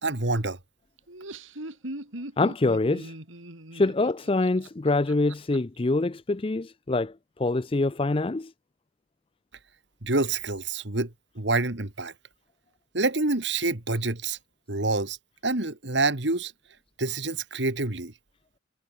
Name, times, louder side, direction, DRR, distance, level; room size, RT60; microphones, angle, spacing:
voice 1, 0.0-0.6 10.0-11.1 11.4-12.1 12.9-14.4 14.7-15.2 15.4-16.5 17.0-18.1, right 2 dB, 60° right, 2.2 m, -27 dB
Laughter, 1.0-5.6, right 1 dB, 80° right, 4.8 m, -40 dB
voice 2, 2.4-3.1 3.7-7.1 7.4-8.5, left 2 dB, 25° left, 0.5 m, -25 dB
head